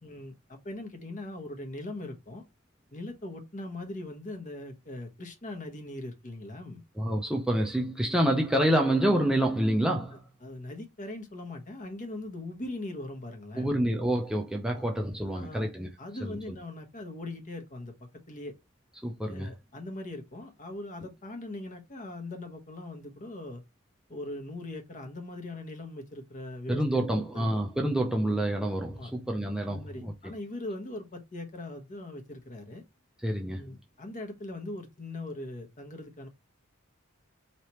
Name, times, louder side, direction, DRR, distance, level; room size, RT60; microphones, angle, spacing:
voice 1, 0.0-2.4 2.9-6.8 10.4-13.7 14.7-14.8 15.3-15.7 16.0-17.9 18.3-18.5 19.2-23.6 24.1-27.6 28.9-29.1 29.7-32.8 33.5-36.3, left 2 dB, 40° left, 1.0 m, -40 dB
voice 2, 7.0-10.2 13.6-15.9 16.2-16.4 19.0-19.5 26.7-30.1 33.2-33.6, right 1 dB, 5° right, 0.5 m, -27 dB
3.2 x 2.9 x 4.3 m
head